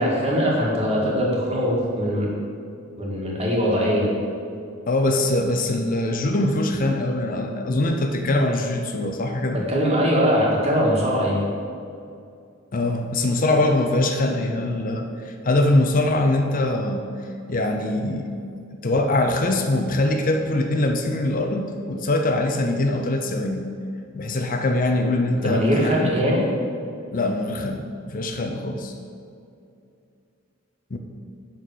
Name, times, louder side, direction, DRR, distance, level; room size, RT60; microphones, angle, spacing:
voice 1, 0.0-2.3 3.0-4.1 9.5-11.5 25.4-26.5, equal, 30° right, -4 dB, 1.8 m, -21 dB
voice 2, 4.9-9.7 12.7-17.1 17.5-18.3 18.7-23.7 24.1-25.9 26.2-26.4 27.1-27.8 28.1-28.9 30.9-31.0, left 2 dB, 40° left, 4 dB, 0.6 m, -23 dB
10.0 x 3.9 x 6.4 m, 2.5 s
head